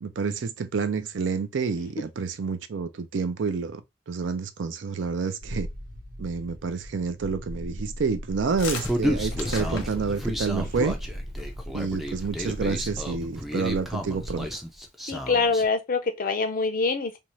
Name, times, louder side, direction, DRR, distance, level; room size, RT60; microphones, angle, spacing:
voice 1, 0.0-3.8 4.1-5.7 6.2-11.0 11.7-14.5, right 5 dB, 70° right, 0.4 m, -29 dB
sound 1, 5.4-14.8, equal, 45° right, 1.0 m, -38 dB
sound 2, 8.3-10.4 11.4-11.7 11.9-12.0 12.2-12.6, left 4 dB, 75° left, 0.8 m, -36 dB
Human voice, 8.8-15.6, equal, ahead, 0.4 m, -32 dB
voice 2, 15.1-17.2, left 4 dB, 45° left, 0.5 m, -25 dB
2.7 x 2.3 x 3.0 m
head